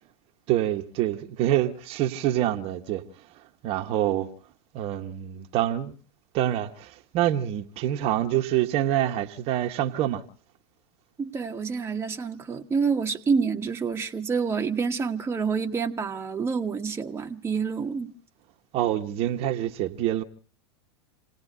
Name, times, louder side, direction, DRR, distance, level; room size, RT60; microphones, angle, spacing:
voice 1, 0.5-3.0 3.6-4.3 4.7-5.9 6.3-10.2 18.7-20.2, right 12 dB, 45° right, 1.1 m, -26 dB
voice 2, 11.2-18.1, right 5 dB, 15° right, 1.2 m, -28 dB
28.5 x 18.0 x 2.7 m
hypercardioid pair, 90°, 14 cm